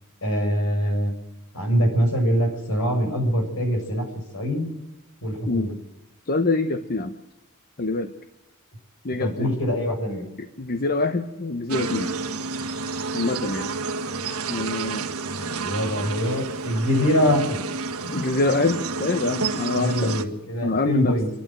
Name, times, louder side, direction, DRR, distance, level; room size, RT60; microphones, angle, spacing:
voice 1, 0.2-1.1 1.5-4.0 4.3-4.7 5.2-5.7 9.2-10.2 15.3-17.6 18.1-18.2 19.7-21.3, equal, 65° left, 3 dB, 6.7 m, -24 dB
voice 2, 6.3-7.1 7.8-8.1 9.0-9.5 10.6-12.1 13.1-13.7 14.5-15.1 18.1-20.2 20.6-21.1, left 2 dB, 40° left, 8 dB, 1.1 m, -25 dB
sound 1, 11.7-20.2, right 4 dB, 70° right, 1.7 m, -30 dB
29.0 x 12.0 x 7.6 m, 1.0 s
head